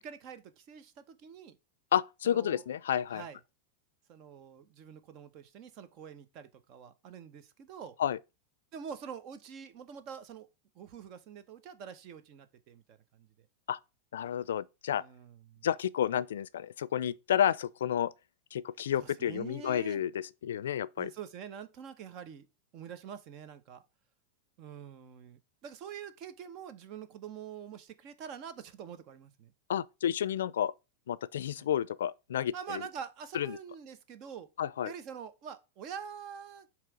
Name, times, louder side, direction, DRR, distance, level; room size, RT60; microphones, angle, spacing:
voice 1, 0.0-1.6 2.2-2.6 3.1-3.4 4.1-8.0 8.7-10.5 10.7-13.3 15.0-15.7 19.0-20.0 21.0-22.5 22.7-23.8 24.6-29.5 31.6-31.7 32.5-34.5 34.8-36.7, right 7 dB, 45° right, 0.9 m, -45 dB
voice 2, 1.9-3.2 8.0-8.2 13.7-13.8 14.1-15.0 15.6-18.1 18.5-21.1 29.7-30.7 31.1-32.8 33.3-33.6 34.6-34.9, left 10 dB, 85° left, 0.4 m, -31 dB
7.4 x 3.1 x 4.7 m
hypercardioid pair, 125°, 0 cm